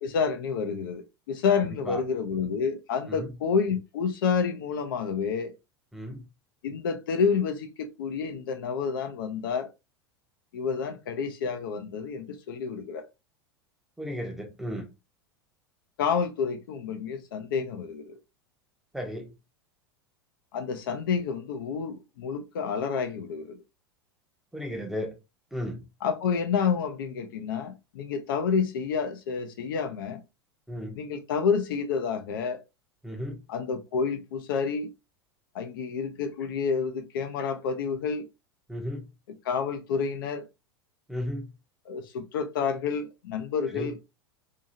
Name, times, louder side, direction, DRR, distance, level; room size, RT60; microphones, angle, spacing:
voice 1, 0.0-5.5 6.6-9.7 10.5-13.0 16.0-18.2 20.5-23.6 26.0-30.2 30.9-32.6 33.5-34.9 35.5-38.3 39.4-40.4 41.9-44.0, left 6 dB, 55° left, 0.5 m, -29 dB
voice 2, 1.6-2.0 3.1-3.3 5.9-6.2 14.0-14.8 18.9-19.3 24.5-25.1 25.5-25.8 30.7-31.0 33.0-33.4 38.7-39.1 41.1-41.5 43.7-43.9, equal, 5° right, 0.7 m, -34 dB
2.7 x 2.7 x 2.5 m
figure-of-eight pair, 85°, 13 cm